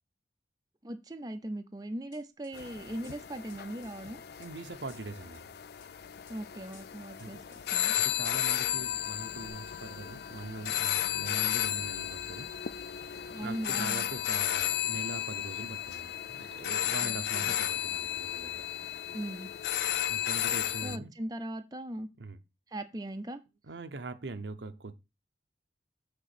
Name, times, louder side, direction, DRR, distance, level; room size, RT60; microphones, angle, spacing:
voice 1, 0.8-4.2 6.3-7.4 7.7-7.9 13.3-14.1 17.0-17.5 19.1-19.5 20.8-22.1 22.7-23.4, right 1 dB, 20° right, 0.5 m, -39 dB
sound 1, 2.1-2.6 3.0-4.5 4.9-5.4 5.8-6.4 6.7-7.7 8.1-8.2 8.6-9.1 9.5-9.6, left 4 dB, 45° left, 1.5 m, -59 dB
sound 2, 2.5-21.0, left 11 dB, 65° left, 0.4 m, -34 dB
voice 2, 4.4-5.4 7.2-7.4 8.0-12.6 13.4-18.6 20.1-21.1 22.2-22.4 23.6-24.9, right 3 dB, 85° right, 0.8 m, -42 dB
8.2 x 3.7 x 5.9 m
head